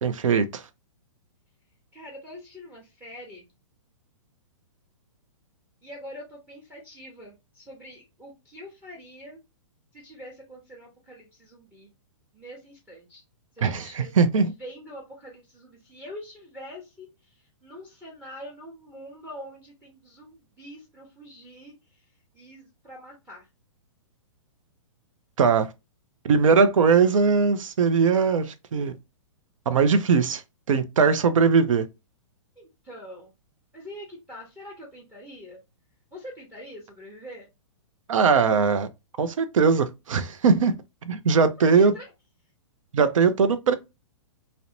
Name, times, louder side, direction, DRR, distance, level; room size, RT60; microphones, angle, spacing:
voice 1, 0.0-0.6 13.6-14.5 25.4-25.7 26.2-28.9 29.7-30.4 30.7-31.9 38.1-38.9 39.2-40.7 41.1-41.9 42.9-43.7, right 5 dB, 85° right, 0.4 m, -20 dB
voice 2, 1.9-3.5 5.8-9.4 9.9-11.9 12.3-13.2 13.5-22.0 22.3-23.5 32.6-33.3 33.7-35.6 36.1-37.5 41.6-42.1, equal, 10° right, 0.6 m, -44 dB
2.5 x 2.0 x 2.8 m
hypercardioid pair, 135°, 17 cm